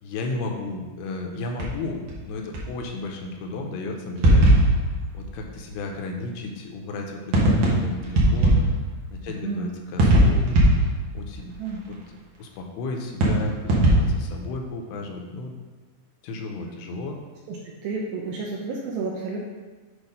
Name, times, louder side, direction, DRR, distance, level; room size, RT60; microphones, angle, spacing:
voice 1, 0.0-2.0 2.3-4.7 5.1-8.7 9.1-10.6 11.1-11.5 11.9-12.0 12.4-15.5 16.2-17.2, left 3 dB, 85° left, 2 dB, 2.7 m, -33 dB
sound 1, 1.6-1.7 2.1-2.2 2.5-2.6 4.2-5.9 7.3-9.2 10.0-12.0 13.2-14.5, right 1 dB, 65° right, 2.0 m, -20 dB
voice 2, 9.3-9.7 11.6-11.8 17.5-17.6 17.8-19.4, right 4 dB, 85° right, -2 dB, 2.2 m, -31 dB
8.1 x 3.0 x 5.2 m, 1.3 s
omnidirectional pair, 4.9 m